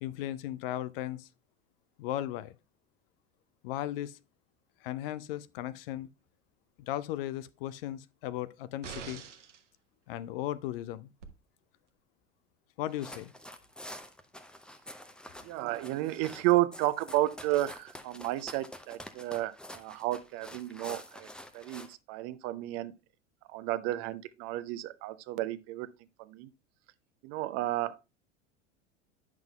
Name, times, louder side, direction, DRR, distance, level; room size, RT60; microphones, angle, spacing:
voice 1, 0.0-1.3 2.0-2.5 3.6-4.2 4.8-6.1 6.8-9.2 10.1-11.1 12.8-13.3, left 13 dB, 50° left, 0.5 m, -36 dB
sound 1, 8.8-9.7 11.2-11.3, right 7 dB, 75° right, 1.1 m, -44 dB
sound 2, 12.9-21.9, left 1 dB, ahead, 0.6 m, -48 dB
voice 2, 15.4-22.9 23.5-25.9 26.2-26.5 27.2-28.0, right 16 dB, 40° right, 0.6 m, -32 dB
10.0 x 6.0 x 2.3 m
figure-of-eight pair, 80°, 36 cm